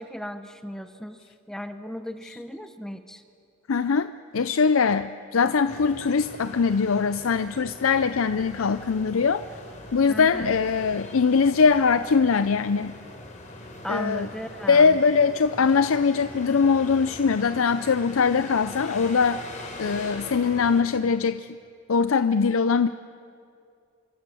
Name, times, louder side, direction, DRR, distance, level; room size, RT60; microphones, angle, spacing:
voice 1, 0.0-3.2 10.1-10.5 13.8-15.0, equal, 5° left, 8 dB, 0.8 m, -36 dB
voice 2, 3.7-9.4 9.9-12.9 13.9-14.3 14.7-19.4 19.8-21.5 21.9-22.9, left 5 dB, 70° left, 12 dB, 0.5 m, -22 dB
sound 1, 5.7-20.8, left 1 dB, 35° left, 3.9 m, -41 dB
26.0 x 24.5 x 7.0 m, 2.4 s
head